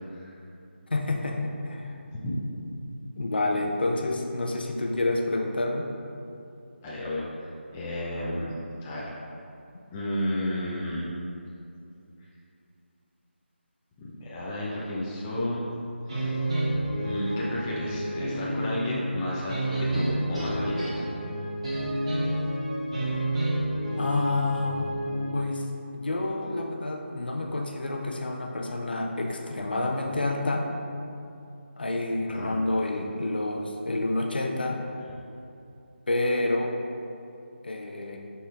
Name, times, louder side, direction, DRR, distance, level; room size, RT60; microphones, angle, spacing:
voice 1, 0.9-2.0 3.2-5.9 24.0-24.9 25.3-25.7 25.9-30.7 31.8-34.8 36.1-36.7 37.6-38.2, left 2 dB, 55° left, 2 dB, 0.7 m, -28 dB
voice 2, 6.8-8.6 8.8-9.1 9.9-11.1 14.0-15.7 16.1-16.4 17.0-21.0 32.3-32.6, left 1 dB, 10° left, -7 dB, 0.5 m, -32 dB
sound 1, 16.1-25.4, right 1 dB, 30° right, 1.1 m, -30 dB
11.0 x 4.3 x 2.4 m, 2.6 s
figure-of-eight pair, 160°, 6 cm